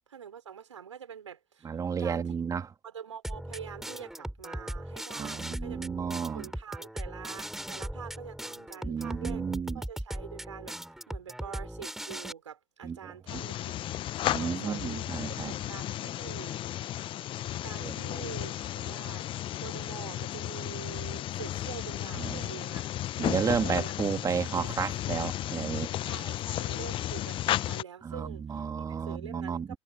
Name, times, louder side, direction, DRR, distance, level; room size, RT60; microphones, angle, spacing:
voice 1, 0.1-1.7 2.0-2.3 2.8-5.9 6.3-9.5 9.7-10.8 11.1-15.0 15.5-16.6 17.6-19.3 19.6-22.8 23.4-24.0 24.5-24.7 26.0-29.8, right 8 dB, 75° right, 6.0 m, -45 dB
voice 2, 1.6-2.7 5.2-6.5 8.8-9.8 12.8-13.4 14.3-15.5 17.8-17.9 22.1-22.5 23.2-25.9 28.0-29.8, right 6 dB, 20° right, 3.3 m, -32 dB
sound 1, 3.2-12.3, right 1 dB, ahead, 4.4 m, -39 dB
sound 2, 13.3-27.8, left 13 dB, 35° left, 0.9 m, -34 dB
figure-of-eight pair, 85°, 16 cm